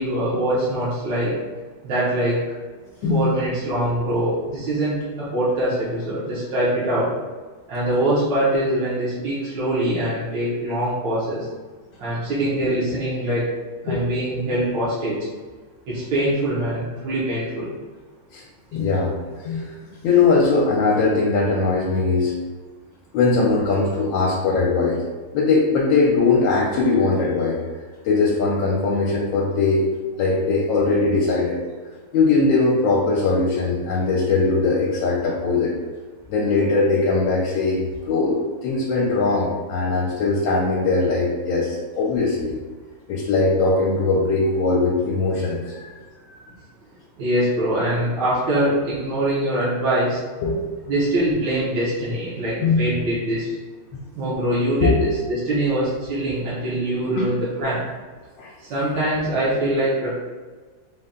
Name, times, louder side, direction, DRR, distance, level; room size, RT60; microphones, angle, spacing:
voice 1, 0.0-1.4 1.8-2.4 3.1-7.1 7.7-11.5 12.0-13.5 13.8-15.2 15.9-17.7 47.2-50.2 50.9-53.6 54.1-57.8 58.6-60.1, right 1 dB, 70° right, -9 dB, 1.4 m, -23 dB
voice 2, 3.0-3.3 12.3-12.5 13.9-14.0 18.3-18.4 18.7-19.1 19.4-19.7 20.0-22.3 23.1-25.0 25.3-27.6 28.0-29.8 30.2-31.6 32.1-35.7 36.3-42.6 43.1-45.9 46.2-46.5 50.4-50.6 52.6-52.9 54.8-55.1 57.2-57.3 58.4-58.5, left 3 dB, 75° left, -3 dB, 1.4 m, -20 dB
4.0 x 2.2 x 3.6 m, 1.4 s
omnidirectional pair, 2.2 m